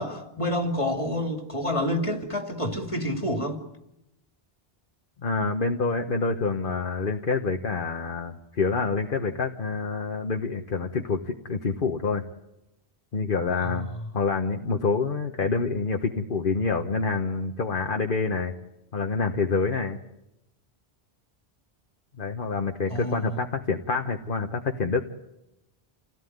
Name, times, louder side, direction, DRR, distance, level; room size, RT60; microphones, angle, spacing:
voice 1, 0.0-3.6 13.5-13.7 22.9-23.2, left 1 dB, 30° left, 2.9 m, -28 dB
voice 2, 5.2-12.2 13.1-13.9 14.1-18.5 18.9-20.0 22.2-25.0, left 4 dB, 55° left, 1.3 m, -27 dB
29.0 x 17.0 x 9.4 m
omnidirectional pair, 1.0 m